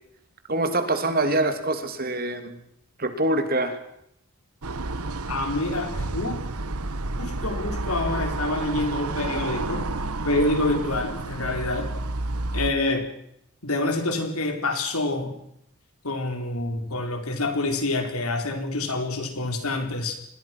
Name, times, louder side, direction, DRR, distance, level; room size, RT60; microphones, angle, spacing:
voice 1, 0.5-2.6 3.0-3.8, right 2 dB, 40° right, 8 dB, 2.9 m, -24 dB
sound 1, 4.6-12.7, right 2 dB, 85° right, 1.4 m, -30 dB
voice 2, 5.3-6.4 7.2-9.9 10.2-11.9 12.5-13.1 13.6-15.4 16.0-20.1, left 2 dB, 80° left, 5 dB, 4.6 m, -27 dB
27.0 x 21.0 x 6.2 m, 0.74 s
head